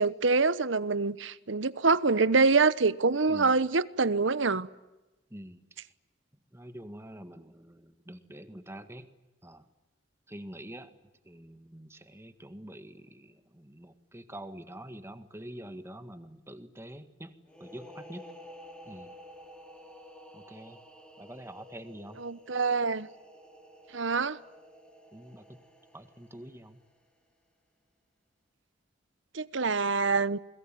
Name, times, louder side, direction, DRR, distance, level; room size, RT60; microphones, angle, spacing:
voice 1, 0.0-4.7 22.2-23.1 23.9-24.4 29.3-30.4, right 4 dB, 75° right, 1.1 m, -25 dB
voice 2, 5.3-5.9 6.5-9.1 9.4-9.6 10.3-10.9 11.3-17.4 17.6-18.3 18.9-19.1 20.3-20.8 21.2-22.2 25.1-25.6 25.9-26.8, right 1 dB, 15° right, 1.9 m, -46 dB
sound 1, 17.5-27.0, equal, 5° left, 3.3 m, -51 dB
28.5 x 21.5 x 9.2 m
head